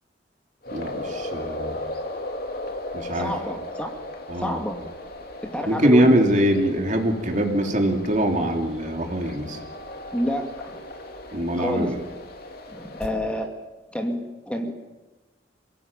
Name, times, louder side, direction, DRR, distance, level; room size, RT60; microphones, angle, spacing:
sound 1, 0.6-13.1, left 1 dB, 55° left, 3.4 m, -36 dB
voice 1, 0.7-1.8 2.9-3.3 4.3-4.6 5.7-9.6 11.3-12.0, right 1 dB, 45° right, 3 dB, 3.4 m, -22 dB
voice 2, 3.1-3.9 4.4-4.9 5.4-6.2 10.1-10.8 11.6-11.9 12.7-13.6 13.9-14.7, equal, 5° left, 3 dB, 2.4 m, -29 dB
28.0 x 18.0 x 9.2 m, 1.2 s
head